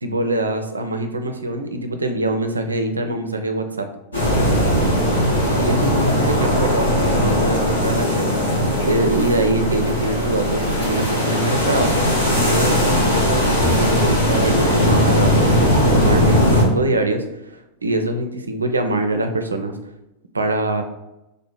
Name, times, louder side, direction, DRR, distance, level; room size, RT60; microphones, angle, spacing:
voice 1, 0.0-3.9 5.6-8.4 8.8-11.9 12.3-19.7 20.3-20.8, right 1 dB, 80° right, 6 dB, 0.4 m, -24 dB
sound 1, 4.1-16.6, equal, 75° left, 1.3 m, -18 dB
3.3 x 2.8 x 3.9 m, 0.92 s
figure-of-eight pair, 90°, 0 cm